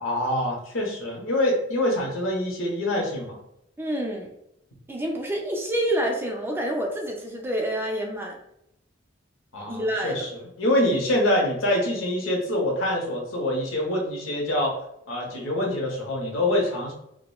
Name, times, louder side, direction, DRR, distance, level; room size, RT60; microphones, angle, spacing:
voice 1, 0.0-3.4 9.5-14.8 15.1-16.9, left 1 dB, 85° left, 0 dB, 0.9 m, -25 dB
voice 2, 3.8-4.3 4.9-8.4 9.7-10.3, right 1 dB, 10° right, 1 dB, 0.4 m, -28 dB
4.8 x 2.1 x 2.3 m, 0.79 s
head